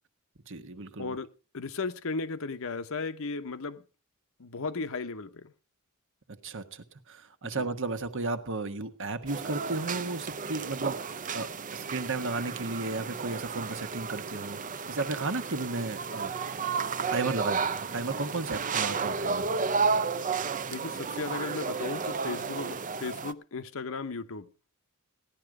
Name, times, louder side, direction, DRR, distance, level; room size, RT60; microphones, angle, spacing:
voice 1, 0.5-1.2 6.4-14.6 14.9-16.3 16.8-16.9 17.1-19.5, right 3 dB, 60° right, 1.3 m, -34 dB
voice 2, 1.5-3.8 4.4-5.5 7.6-7.7 20.7-24.5, left 4 dB, 65° left, 0.9 m, -35 dB
sound 1, 9.3-23.3, right 5 dB, 35° right, 0.7 m, -32 dB
15.5 x 11.0 x 4.9 m
head